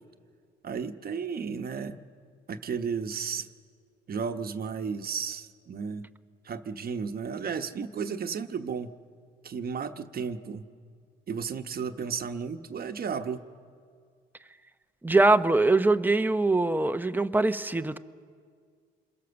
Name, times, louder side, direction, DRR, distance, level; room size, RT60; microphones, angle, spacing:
voice 1, 0.6-2.0 2.5-3.5 4.1-6.1 6.4-8.9 9.4-10.6 11.3-13.5, right 6 dB, 50° right, 8 dB, 1.1 m, -33 dB
voice 2, 15.0-18.0, right 2 dB, 10° right, 10 dB, 0.8 m, -23 dB
27.0 x 22.5 x 7.0 m, 2.1 s
cardioid pair, 90°, 20 cm